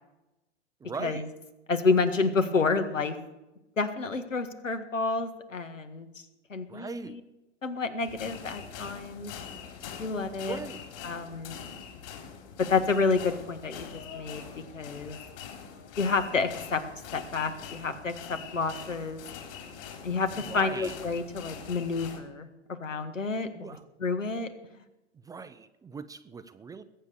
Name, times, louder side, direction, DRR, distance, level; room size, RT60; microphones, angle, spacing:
voice 1, 0.8-1.2 6.7-7.2 10.4-10.8 20.5-20.9 23.5-23.8 25.2-26.8, right 5 dB, 10° right, 11 dB, 0.5 m, -40 dB
voice 2, 1.7-3.2 3.8-6.1 6.5-7.2 7.6-9.3 10.0-10.6 11.0-11.6 12.6-14.4 14.7-15.2 16.0-16.8 17.1-19.2 20.0-22.5 22.8-23.7 24.0-24.5, left 4 dB, 85° left, 9 dB, 1.7 m, -29 dB
sound 1, 8.0-22.2, left 7 dB, 50° left, 3.8 m, -44 dB
21.0 x 8.2 x 6.9 m, 0.97 s
figure-of-eight pair, 105°, 37 cm